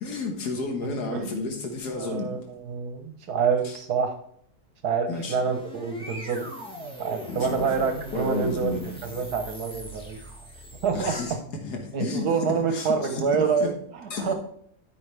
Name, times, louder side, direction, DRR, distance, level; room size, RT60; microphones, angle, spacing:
voice 1, 0.0-2.4 3.6-3.7 5.1-5.3 7.3-7.7 8.1-8.8 10.9-11.3 11.6-13.7 14.1-14.3, left 3 dB, 85° left, 2 dB, 1.9 m, -31 dB
voice 2, 2.0-4.2 4.8-6.4 7.0-10.2 10.8-11.2 11.9-14.3, right 6 dB, 75° right, 6 dB, 1.5 m, -27 dB
sound 1, 5.0-11.4, equal, 5° left, 1.8 m, -41 dB
12.0 x 5.7 x 3.4 m, 0.67 s
omnidirectional pair, 1.7 m